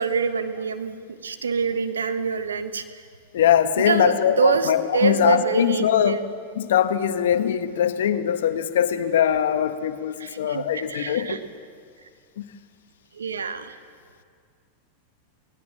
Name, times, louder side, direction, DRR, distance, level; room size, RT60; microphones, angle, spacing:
voice 1, 0.0-3.0 3.8-6.2 10.2-11.4 13.1-13.7, right 5 dB, 90° right, 9 dB, 1.4 m, -25 dB
voice 2, 3.3-6.2 6.5-11.4, left 9 dB, 75° left, 9 dB, 1.3 m, -22 dB
24.5 x 18.5 x 7.5 m, 2.1 s
hypercardioid pair, 105°, 0 cm